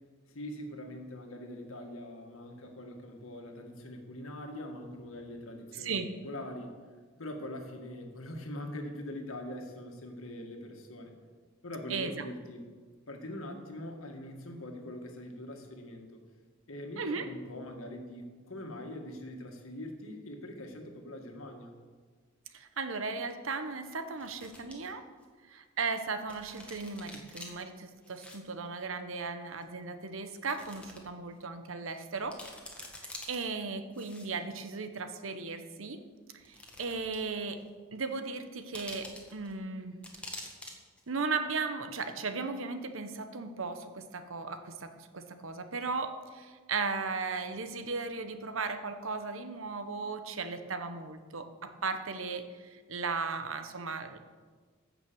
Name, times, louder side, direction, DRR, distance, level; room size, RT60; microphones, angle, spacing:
voice 1, 0.3-6.0 6.2-6.8 7.2-11.1 11.6-12.7 13.1-16.2 16.7-21.7, left 1 dB, 80° left, 3 dB, 1.8 m, -43 dB
voice 2, 5.7-6.1 11.9-12.2 17.0-17.3 22.5-25.0 25.4-32.4 33.3-36.0 36.4-37.6 37.9-40.0 41.1-54.2, right 4 dB, 70° right, 8 dB, 1.0 m, -36 dB
sound 1, 22.6-22.7 24.1-24.7 25.2-25.3 26.3-27.5 28.0-28.4 28.6-28.7 29.6-29.7 30.4-31.0 31.4-31.5 31.9-32.0 32.2-33.4 33.9-34.6 35.5-35.6 36.4-37.3 37.6-37.7 38.7-39.5 40.0-40.7 41.0-41.1, left 1 dB, 5° left, 1.7 m, -47 dB
15.0 x 6.0 x 6.9 m, 1.5 s
head